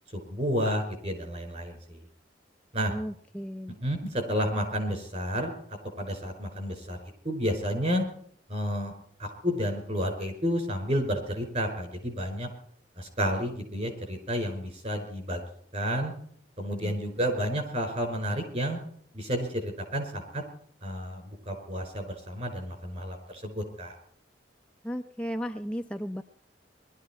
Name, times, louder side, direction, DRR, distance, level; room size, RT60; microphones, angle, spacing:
voice 1, 0.1-2.0 2.7-2.9 3.8-5.5 6.0-7.0 7.2-8.1 8.5-8.9 9.2-12.5 13.0-15.4 15.7-16.1 16.6-18.8 19.1-20.4 20.8-23.9, equal, 40° right, 5 dB, 5.0 m, -31 dB
voice 2, 2.9-3.8 16.8-17.0 24.8-26.2, equal, 5° left, 5 dB, 0.5 m, -35 dB
21.5 x 13.0 x 4.4 m, 0.62 s
head